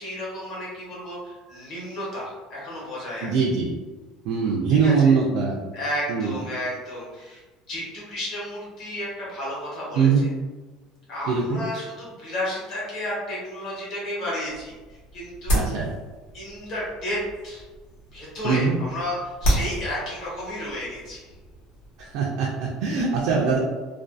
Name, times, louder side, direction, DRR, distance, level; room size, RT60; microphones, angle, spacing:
voice 1, 0.0-3.4 4.7-5.2 5.7-7.4 7.7-10.1 11.1-15.7 16.3-17.6 18.1-21.3, left 1 dB, 40° left, -6 dB, 1.0 m, -32 dB
voice 2, 3.2-3.7 4.2-5.6 6.1-6.4 9.9-10.2 11.3-11.6 15.5-15.9 18.4-18.8 22.0-23.6, right 5 dB, 55° right, -2 dB, 0.3 m, -22 dB
sound 1, 14.4-22.1, equal, 80° left, 1.0 m, -31 dB
2.5 x 2.3 x 2.3 m, 1.3 s
cardioid pair, 180°, 0 cm